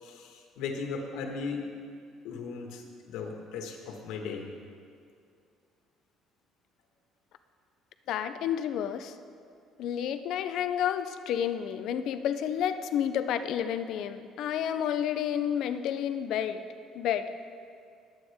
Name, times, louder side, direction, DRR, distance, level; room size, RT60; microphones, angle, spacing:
voice 1, 0.0-1.6 2.2-2.8 3.1-4.4, left 5 dB, 90° left, 2 dB, 1.7 m, -37 dB
voice 2, 8.1-9.1 9.8-16.6 16.9-17.3, left 9 dB, 55° left, 10 dB, 0.5 m, -30 dB
20.0 x 8.9 x 3.6 m, 2.3 s
cardioid pair, 180°, 0 cm